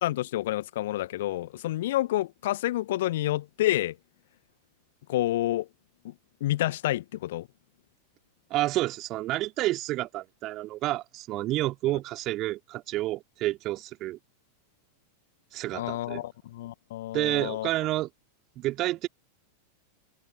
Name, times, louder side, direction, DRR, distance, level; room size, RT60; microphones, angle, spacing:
voice 1, 0.0-4.0 5.1-5.7 6.0-6.1 6.4-7.5 15.7-17.7, left 15 dB, 55° left, 1.6 m, -29 dB
voice 2, 8.5-14.2 15.5-16.2 17.1-18.1 18.5-19.1, right 16 dB, 35° right, 3.5 m, -29 dB
figure-of-eight pair, 90°, 0 cm